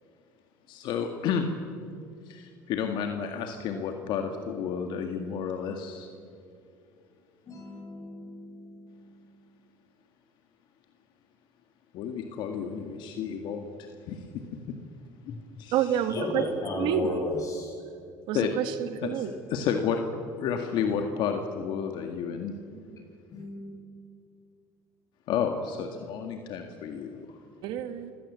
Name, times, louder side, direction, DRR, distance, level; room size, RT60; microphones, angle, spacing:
voice 1, 0.7-1.5 2.3-6.1 11.9-13.7 14.1-14.4 14.7-14.8 15.6-15.7 18.3-18.5 19.1-19.3 19.5-20.0 20.4-22.5 25.3-27.3, left 7 dB, 65° left, 5 dB, 1.9 m, -31 dB
voice 2, 7.5-9.0 15.3-15.4 16.1-17.8 22.7-22.9 23.3-23.7, left 2 dB, 40° left, 0 dB, 7.9 m, -34 dB
voice 3, 15.7-16.5 16.7-17.2 18.3-19.3 27.6-28.1, right 9 dB, 70° right, 10 dB, 1.6 m, -28 dB
27.5 x 16.5 x 7.5 m, 2.4 s
supercardioid pair, 95°, 8 cm